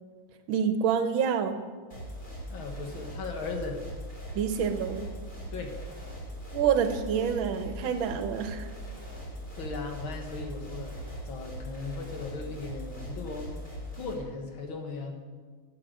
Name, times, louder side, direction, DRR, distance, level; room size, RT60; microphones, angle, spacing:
voice 1, 0.5-1.6 4.4-5.1 6.5-8.7, right 7 dB, 85° right, 9 dB, 1.7 m, -27 dB
sound 1, 1.9-14.1, equal, 25° left, 3.6 m, -40 dB
voice 2, 2.5-3.8 5.5-5.8 9.6-11.0 11.3-13.5 14.0-15.2, left 3 dB, 90° left, 3 dB, 2.3 m, -37 dB
11.5 x 8.6 x 6.5 m, 1.5 s
omnidirectional pair, 2.2 m